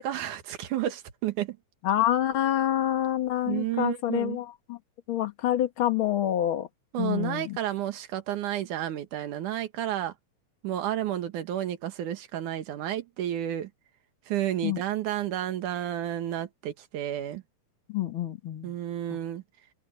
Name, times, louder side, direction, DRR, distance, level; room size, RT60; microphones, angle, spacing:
voice 1, 0.0-1.6 3.5-4.4 6.9-10.1 10.6-13.7 14.3-17.4 18.6-19.4, right 12 dB, 80° right, 3.0 m, -31 dB
voice 2, 1.8-4.8 5.1-6.7 7.0-7.6 14.6-14.8 17.9-18.7, left 12 dB, 50° left, 2.1 m, -27 dB
omnidirectional pair, 3.5 m